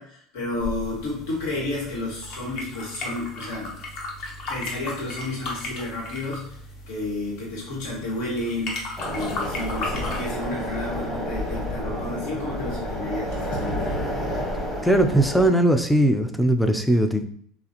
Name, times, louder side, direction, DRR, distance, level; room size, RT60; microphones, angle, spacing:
voice 1, 0.0-3.8 4.5-6.6 6.9-13.8, left 2 dB, 80° left, -3 dB, 1.6 m, -31 dB
sound 1, 0.6-10.2, left 2 dB, 45° left, 1.0 m, -36 dB
sound 2, 9.0-15.5, equal, 20° left, 1.1 m, -30 dB
voice 2, 14.8-17.3, right 1 dB, ahead, 7 dB, 0.3 m, -19 dB
6.6 x 2.4 x 2.9 m, 0.64 s
cardioid pair, 165°, 0 cm